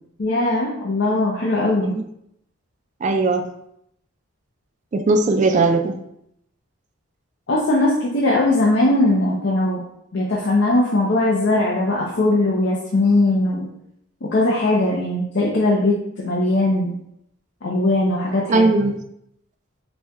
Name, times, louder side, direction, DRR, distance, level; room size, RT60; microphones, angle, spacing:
voice 1, 0.2-1.9 7.5-9.8 10.1-13.7 14.2-17.0 17.6-18.7, left 2 dB, 55° left, -3 dB, 0.5 m, -19 dB
voice 2, 3.0-3.5 4.9-6.0 18.5-19.0, right 3 dB, 35° right, 5 dB, 0.3 m, -18 dB
4.2 x 2.3 x 3.5 m, 0.75 s
head